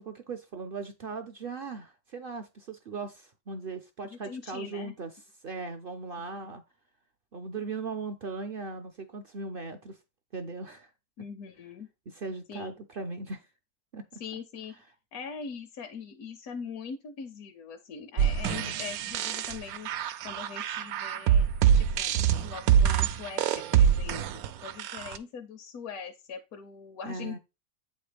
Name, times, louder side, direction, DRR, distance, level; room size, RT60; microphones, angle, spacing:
voice 1, 0.0-5.1 5.4-6.6 7.3-10.0 10.3-10.9 12.1-13.5 13.9-14.2 18.5-18.8 27.0-27.4, right 4 dB, 55° right, 0.6 m, -38 dB
voice 2, 4.0-4.9 6.2-6.3 11.2-11.9 12.5-12.7 14.1-14.7 15.1-19.9 20.2-21.5 21.7-27.4, left 6 dB, 75° left, 1.2 m, -42 dB
sound 1, 18.2-25.2, right 9 dB, 80° right, 1.0 m, -25 dB
8.3 x 3.2 x 5.0 m
omnidirectional pair, 1.6 m